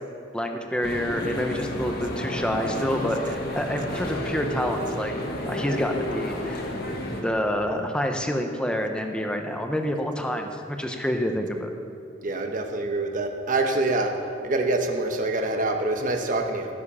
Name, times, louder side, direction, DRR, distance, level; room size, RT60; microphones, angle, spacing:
voice 1, 0.3-5.1 5.5-6.6 7.2-11.7, equal, 5° left, 4 dB, 0.9 m, -27 dB
sound 1, 0.8-7.2, left 1 dB, 55° left, 1.6 m, -31 dB
voice 2, 12.2-14.1 14.4-16.7, right 2 dB, 45° right, 4 dB, 1.1 m, -25 dB
16.0 x 7.5 x 5.6 m, 2.6 s
head